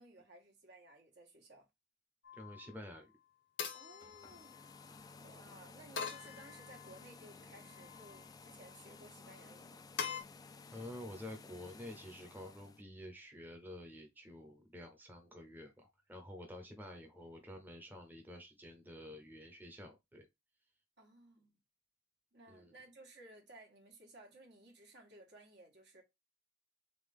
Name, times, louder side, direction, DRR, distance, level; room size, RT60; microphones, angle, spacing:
voice 1, 0.0-1.6 3.7-4.6 5.2-9.8 21.0-21.6 22.3-26.0, right 1 dB, 60° right, 1.6 m, -58 dB
sound 1, 2.2-2.7 3.6-4.9 6.0-7.0 7.6-8.2 10.0-10.2, left 7 dB, 70° left, 0.8 m, -44 dB
voice 2, 2.3-3.1 10.7-20.3 22.5-22.7, left 1 dB, 10° right, 0.8 m, -50 dB
sound 2, 3.9-12.8, left 4 dB, 20° left, 0.3 m, -56 dB
3.8 x 3.5 x 3.5 m
head